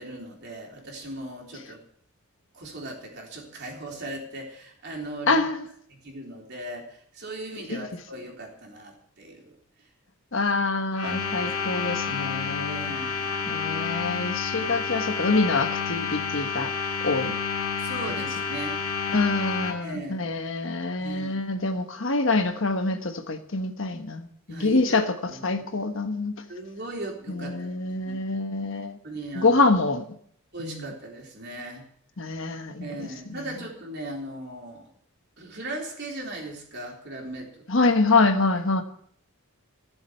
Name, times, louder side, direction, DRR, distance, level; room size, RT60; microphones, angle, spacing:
voice 1, 0.0-1.8 2.5-5.4 5.9-9.5 9.8-9.9 11.0-11.2 11.4-11.5 12.6-13.4 14.5-14.8 17.8-18.8 19.8-20.2 21.0-21.5 24.5-25.0 25.3-25.4 26.5-27.7 28.0-28.3 29.0-29.6 30.5-31.8 32.8-34.9 35.4-37.7, right 1 dB, 50° right, 0 dB, 3.7 m, -38 dB
voice 2, 5.3-5.6 7.7-7.9 10.3-12.9 13.5-16.7 17.0-17.3 19.1-26.3 27.3-29.0 29.3-30.2 30.6-30.9 32.2-33.1 37.7-38.8, left 3 dB, 60° left, 7 dB, 1.2 m, -25 dB
sound 1, 10.9-19.7, left 6 dB, 75° left, 2.0 m, -29 dB
15.0 x 7.4 x 8.0 m, 0.64 s
head